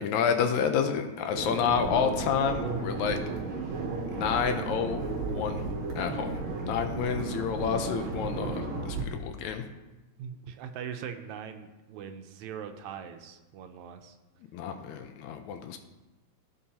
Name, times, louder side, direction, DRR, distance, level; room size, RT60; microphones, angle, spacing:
voice 1, 0.0-3.2 4.1-5.7 6.0-9.6 14.5-15.8, left 7 dB, 75° left, 7 dB, 1.9 m, -29 dB
sound 1, 1.3-9.0, right 3 dB, 55° right, 1.7 m, -34 dB
voice 2, 10.2-14.2, right 8 dB, 80° right, 6 dB, 1.9 m, -41 dB
16.0 x 5.5 x 2.9 m, 1.1 s
omnidirectional pair, 3.4 m